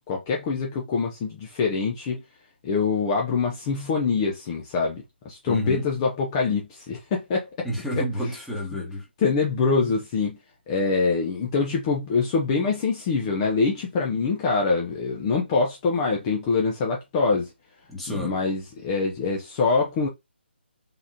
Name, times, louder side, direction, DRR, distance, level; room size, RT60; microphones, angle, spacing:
voice 1, 0.1-2.2 2.6-7.7 8.0-8.1 9.2-10.4 10.7-17.5 18.1-20.1, left 4 dB, 25° left, 0.7 m, -24 dB
voice 2, 5.5-5.8 7.6-9.1 17.9-18.3, equal, ahead, 1.2 m, -30 dB
3.8 x 3.5 x 2.8 m
figure-of-eight pair, 140°, 6 cm